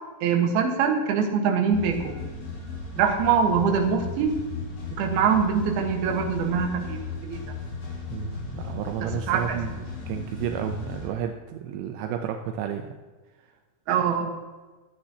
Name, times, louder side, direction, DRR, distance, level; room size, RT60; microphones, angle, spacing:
voice 1, 0.2-2.1 3.0-4.4 5.0-7.4 9.0-9.6 13.9-14.4, right 6 dB, 65° right, 3 dB, 2.7 m, -23 dB
sound 1, 1.7-11.1, left 4 dB, 75° left, 8.0 m, -36 dB
voice 2, 8.1-12.9, right 9 dB, 85° right, 5 dB, 2.5 m, -32 dB
24.5 x 9.6 x 2.9 m, 1.3 s
omnidirectional pair, 5.9 m